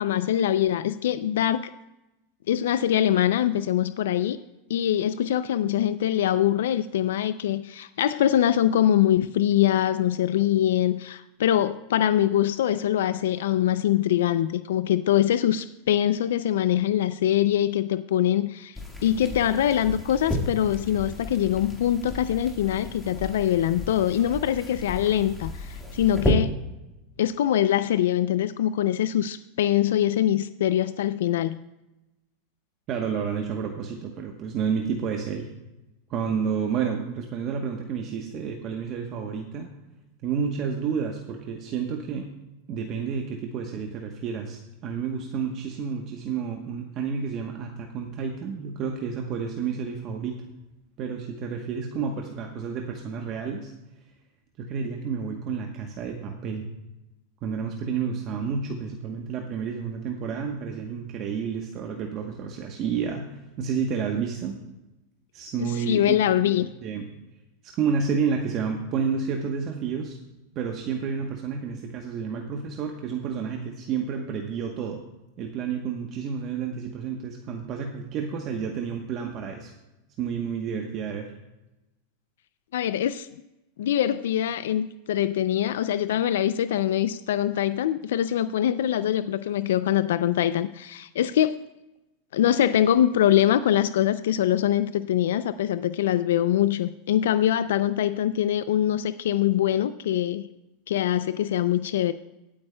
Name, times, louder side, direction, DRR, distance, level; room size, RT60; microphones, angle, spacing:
voice 1, 0.0-1.7 2.5-4.4 4.7-26.6 27.2-31.6 65.6-66.7 82.7-83.3 83.8-91.6 92.3-100.4 100.9-102.1, left 11 dB, 85° left, 13 dB, 0.3 m, -23 dB
sound 1, 18.7-26.3, left 1 dB, 5° left, 1.7 m, -33 dB
voice 2, 32.9-35.5 36.1-39.7 40.2-42.3 42.7-50.4 51.0-53.7 54.6-56.6 57.4-64.5 65.3-67.1 67.8-70.2 70.5-75.0 75.4-79.7 80.2-81.3, right 6 dB, 40° right, 2 dB, 1.0 m, -30 dB
19.5 x 8.7 x 2.2 m, 0.97 s
supercardioid pair, 145°, 0 cm